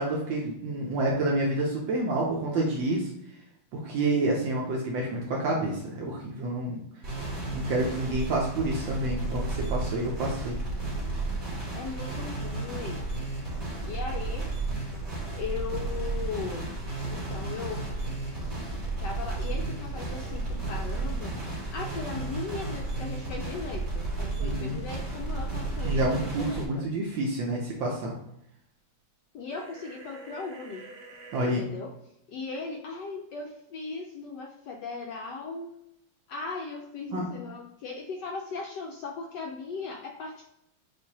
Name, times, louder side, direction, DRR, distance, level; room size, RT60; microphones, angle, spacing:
voice 1, 0.0-3.1 3.7-6.8 7.5-10.6 24.4-24.8 25.8-28.1 31.3-31.6 37.1-37.2, right 2 dB, 70° right, -2 dB, 1.4 m, -28 dB
sound 1, 7.0-26.6, right 3 dB, 20° right, 1.8 m, -33 dB
voice 2, 11.7-13.0 13.8-14.5 15.3-16.7 17.1-17.8 19.0-26.8 29.3-30.9 31.4-31.9 32.3-35.7 36.3-40.5, left 4 dB, 80° left, 1 dB, 1.0 m, -38 dB
sound 2, 29.5-31.6, right 3 dB, 85° right, 0.6 m, -47 dB
7.3 x 2.6 x 2.8 m, 0.79 s
omnidirectional pair, 2.3 m